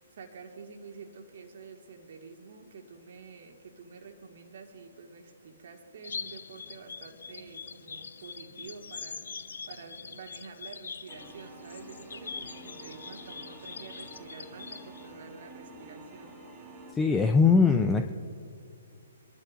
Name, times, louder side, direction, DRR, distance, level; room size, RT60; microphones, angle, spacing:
voice 1, 0.0-9.2 9.7-16.4, right 5 dB, 55° right, 2 dB, 2.0 m, -48 dB
sound 1, 6.0-15.1, left 5 dB, 70° left, 0.6 m, -43 dB
sound 2, 11.1-16.9, right 2 dB, 25° right, 2.6 m, -49 dB
voice 2, 16.9-18.1, left 5 dB, 10° left, 5 dB, 0.5 m, -21 dB
26.0 x 11.5 x 2.6 m, 2.4 s
figure-of-eight pair, 130°, 0 cm